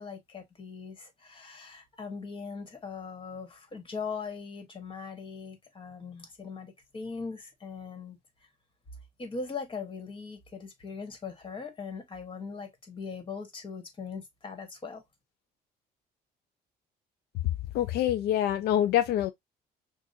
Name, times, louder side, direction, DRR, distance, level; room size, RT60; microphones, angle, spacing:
voice 1, 0.0-8.2 9.2-15.0, left 5 dB, 30° left, 1.6 m, -40 dB
voice 2, 17.7-19.3, left 11 dB, 70° left, 0.4 m, -25 dB
6.2 x 2.5 x 2.7 m
cardioid pair, 110°, 17 cm